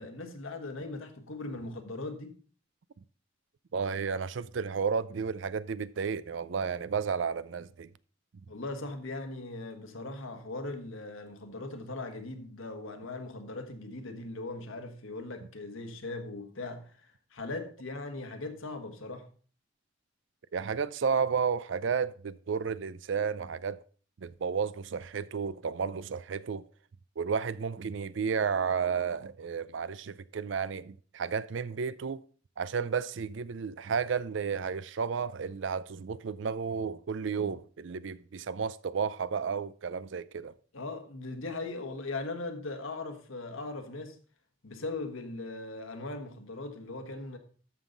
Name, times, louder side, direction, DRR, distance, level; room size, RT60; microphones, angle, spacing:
voice 1, 0.0-2.4 8.5-19.3 40.7-44.2 44.6-47.4, left 2 dB, 90° left, 1.4 m, -39 dB
voice 2, 3.7-7.9 20.5-23.8 24.2-26.6 27.2-32.2 32.6-40.5, right 6 dB, 70° right, 0.4 m, -32 dB
13.0 x 5.6 x 3.9 m
head